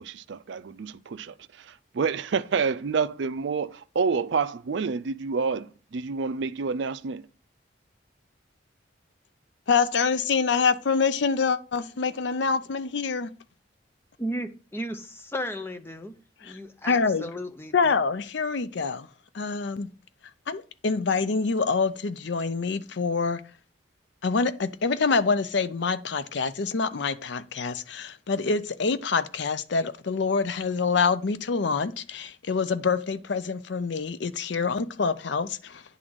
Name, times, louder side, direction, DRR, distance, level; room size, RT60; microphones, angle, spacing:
voice 1, 0.0-7.3, right 5 dB, 65° right, 0.4 m, -28 dB
voice 2, 9.7-13.3 16.4-16.6 16.9-17.3 17.7-19.1 19.3-19.9 20.5-23.4 24.2-35.8, left 5 dB, 65° left, 0.5 m, -26 dB
voice 3, 14.2-18.0, equal, 10° left, 0.7 m, -35 dB
9.8 x 3.8 x 6.2 m
head